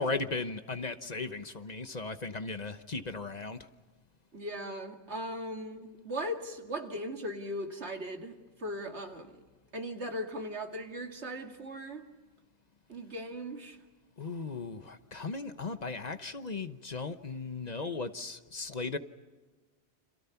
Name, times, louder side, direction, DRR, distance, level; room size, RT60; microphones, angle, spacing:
voice 1, 0.0-3.6 14.2-19.0, left 3 dB, 40° left, 10 dB, 1.1 m, -36 dB
voice 2, 4.3-9.3 9.7-12.1 12.9-13.8, equal, 85° right, 4 dB, 2.4 m, -38 dB
29.5 x 27.0 x 5.8 m, 1.3 s
omnidirectional pair, 1.1 m